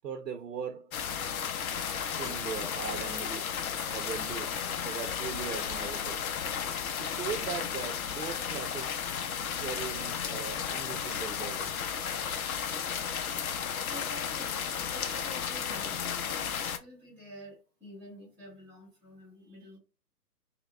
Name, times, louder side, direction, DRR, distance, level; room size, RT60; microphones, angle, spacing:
voice 1, 0.0-0.9 2.0-3.5 3.9-6.2 6.6-8.9 9.6-11.8, right 7 dB, 80° right, 0.7 m, -40 dB
sound 1, 0.9-16.8, left 8 dB, 60° left, 0.6 m, -34 dB
voice 2, 13.8-19.8, right 1 dB, 5° left, 0.9 m, -48 dB
5.2 x 2.3 x 2.3 m
hypercardioid pair, 145°, 49 cm